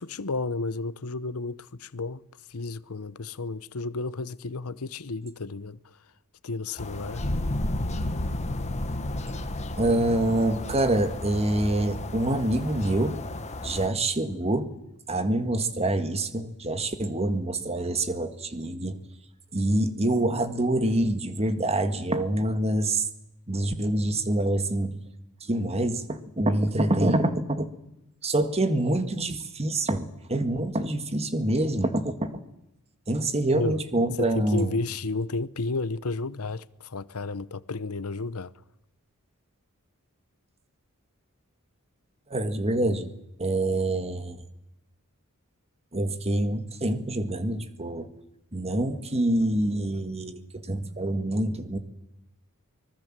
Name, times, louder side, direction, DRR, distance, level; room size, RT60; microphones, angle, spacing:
voice 1, 0.0-2.2 2.5-6.0 6.4-7.2 33.5-33.8 34.2-38.5, left 3 dB, 75° left, 0.9 m, -32 dB
sound 1, 6.8-13.9, left 2 dB, 30° left, 1.6 m, -37 dB
sound 2, 7.2-12.1, left 1 dB, 50° left, 1.8 m, -32 dB
voice 2, 9.8-13.2 13.6-14.7 15.1-19.0 19.5-23.1 23.5-25.0 25.5-27.7 28.2-32.4 33.1-34.8 42.3-43.1 43.4-44.4 45.9-48.1 48.5-51.8, right 1 dB, 30° right, 1.8 m, -26 dB
25.0 x 19.0 x 7.6 m
head